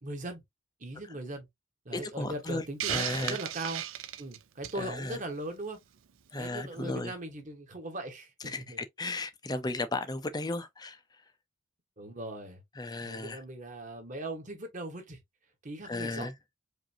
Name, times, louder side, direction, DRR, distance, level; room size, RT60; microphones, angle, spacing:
voice 1, 0.0-0.4 0.8-1.5 1.8-3.8 4.2-5.8 6.3-8.8 12.0-12.6 13.0-15.2 15.6-16.3, right 1 dB, 35° right, 1.2 m, -39 dB
voice 2, 2.2-3.4 4.8-5.2 6.3-7.1 8.4-11.0 12.8-13.4 15.9-16.3, left 2 dB, 20° left, 0.5 m, -35 dB
Hiss, 2.8-4.9, right 11 dB, 75° right, 0.4 m, -34 dB
5.0 x 2.6 x 2.7 m
head